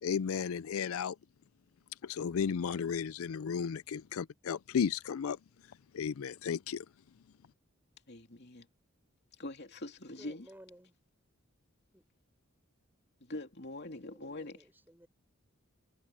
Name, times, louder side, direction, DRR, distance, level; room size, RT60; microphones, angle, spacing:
voice 1, 0.0-1.2 2.0-5.4 5.7-6.9, left 7 dB, 80° left, 0.4 m, -34 dB
voice 2, 8.1-8.7 9.4-10.5 13.2-14.6, left 1 dB, 50° left, 2.9 m, -43 dB
voice 3, 10.2-10.9 11.9-12.0 13.8-15.1, right 1 dB, 10° right, 5.2 m, -56 dB
head